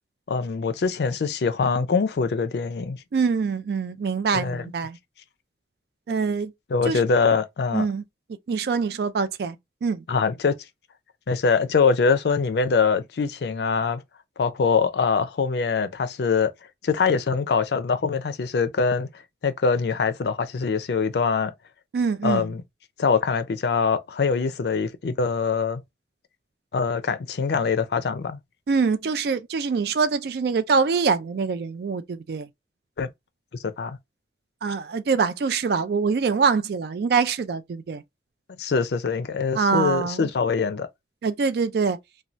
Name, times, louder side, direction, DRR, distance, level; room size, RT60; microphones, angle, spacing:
voice 1, 0.3-3.0 4.3-4.7 6.7-7.9 10.1-10.6 11.3-14.0 14.4-16.5 16.8-19.1 19.4-21.5 22.2-22.6 23.0-25.8 26.7-28.4 33.0-33.1 33.8-34.0 38.6-40.9, left 5 dB, 65° left, 0.4 m, -23 dB
voice 2, 3.1-5.0 6.1-6.5 6.9-7.0 7.7-8.0 8.5-10.0 21.9-22.5 28.7-32.5 34.6-38.0 39.5-40.3 41.2-42.0, right 5 dB, 60° right, 0.3 m, -24 dB
2.6 x 2.2 x 3.0 m
head